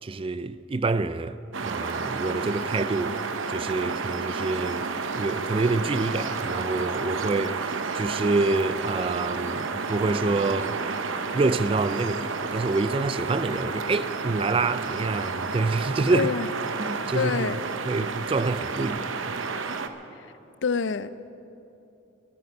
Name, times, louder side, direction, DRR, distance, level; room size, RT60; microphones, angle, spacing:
voice 1, 0.0-3.2 3.5-4.9 5.2-10.8 11.3-16.3 16.8-17.5 17.9-19.4, right 3 dB, 30° right, 0.4 m, -27 dB
sound 1, 1.5-19.9, right 4 dB, 85° right, 0.8 m, -31 dB
voice 2, 16.1-16.5 17.1-17.6 20.6-21.3, left 5 dB, 65° left, 0.5 m, -27 dB
13.5 x 9.4 x 9.5 m
head